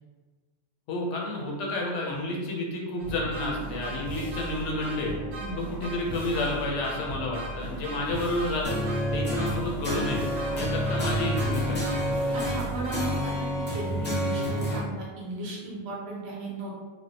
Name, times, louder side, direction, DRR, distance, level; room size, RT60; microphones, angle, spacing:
voice 1, 0.9-5.2 5.6-8.8 9.1-10.2 10.6-11.9, left 2 dB, 70° left, -2 dB, 0.9 m, -30 dB
sound 1, 3.0-13.6, right 1 dB, 85° right, 1.1 m, -37 dB
sound 2, 8.6-14.8, equal, 15° left, 0.4 m, -29 dB
voice 2, 12.3-16.7, right 2 dB, 60° right, -3 dB, 0.8 m, -36 dB
3.2 x 2.1 x 2.8 m, 1.4 s
omnidirectional pair, 1.3 m